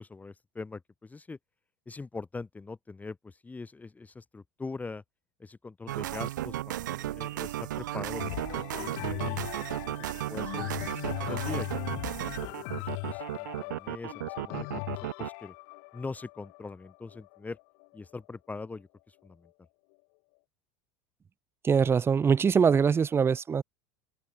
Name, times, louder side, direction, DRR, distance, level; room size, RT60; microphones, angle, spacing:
voice 1, 0.0-1.4 1.9-5.0 5.4-9.9 10.3-10.7 11.2-15.5 15.9-17.6 17.9-19.5, left 3 dB, 15° left, 2.3 m, -42 dB
sound 1, 5.9-15.3, right 14 dB, 85° right, 0.8 m, -34 dB
sound 2, 8.2-18.0 18.6-18.7, left 40 dB or more, 65° left, 5.0 m, -39 dB
voice 2, 21.6-23.6, right 6 dB, 25° right, 0.9 m, -23 dB
open air
hypercardioid pair, 90°, 10 cm